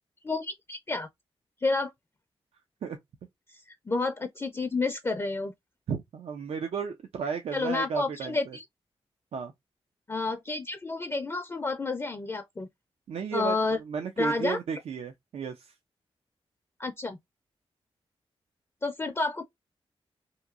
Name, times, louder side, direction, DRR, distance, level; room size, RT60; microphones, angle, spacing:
voice 1, 0.2-1.1 1.6-1.9 3.5-5.5 7.5-8.6 10.1-12.7 13.3-13.8 14.2-14.6 16.8-17.2 18.8-19.4, left 3 dB, 25° left, 0.4 m, -30 dB
voice 2, 5.9-8.6 9.3-9.5 13.1-15.7, right 6 dB, 85° right, 0.4 m, -34 dB
2.9 x 2.6 x 2.3 m
cardioid pair, 75°, 10 cm